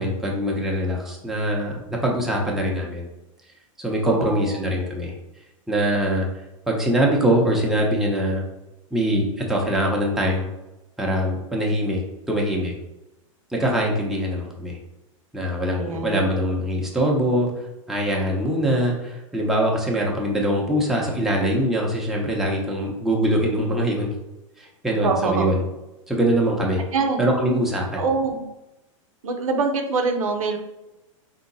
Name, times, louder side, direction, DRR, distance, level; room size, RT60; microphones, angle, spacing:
voice 1, 0.0-3.1 3.8-5.1 5.7-6.3 6.7-8.4 8.9-10.5 11.0-12.0 12.3-12.7 13.5-14.8 15.3-17.5 17.9-24.1 24.6-25.6 26.1-26.8 27.2-28.0, equal, ahead, -2 dB, 0.7 m, -23 dB
voice 2, 4.0-4.6 15.8-16.3 25.0-25.6 26.9-27.2 28.0-28.4 29.2-30.6, right 4 dB, 90° right, 4 dB, 0.7 m, -24 dB
3.6 x 2.8 x 3.9 m, 0.98 s
hypercardioid pair, 135°, 17 cm